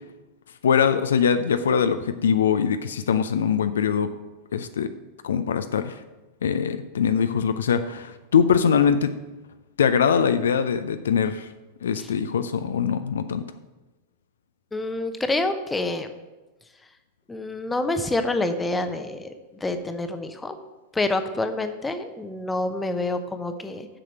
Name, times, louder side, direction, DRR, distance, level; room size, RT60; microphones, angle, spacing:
voice 1, 0.6-4.1 4.5-4.9 5.2-5.9 6.4-9.1 9.8-11.5 11.8-13.4, left 7 dB, 65° left, 10 dB, 0.4 m, -22 dB
voice 2, 14.7-16.1 17.3-19.3 19.6-20.6 20.9-23.9, left 2 dB, 10° left, 8 dB, 0.8 m, -27 dB
7.6 x 6.4 x 6.7 m, 1.1 s
figure-of-eight pair, 90°, 0 cm